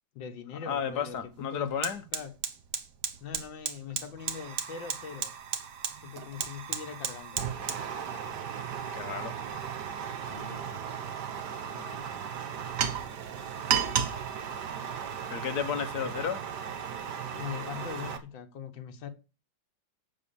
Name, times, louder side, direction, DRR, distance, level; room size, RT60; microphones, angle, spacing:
voice 1, 0.2-1.8 2.1-2.3 3.2-5.3 6.0-7.4 10.2-11.0 11.7-12.1 16.0-16.2 17.3-19.1, left 7 dB, 75° left, 2.0 m, -42 dB
voice 2, 0.7-2.0 8.9-9.3 15.3-16.4, left 7 dB, 60° left, 1.7 m, -32 dB
Fire, 0.7-0.8 1.2-18.2, right 8 dB, 65° right, 1.6 m, -35 dB
8.5 x 6.7 x 6.8 m
omnidirectional pair, 2.1 m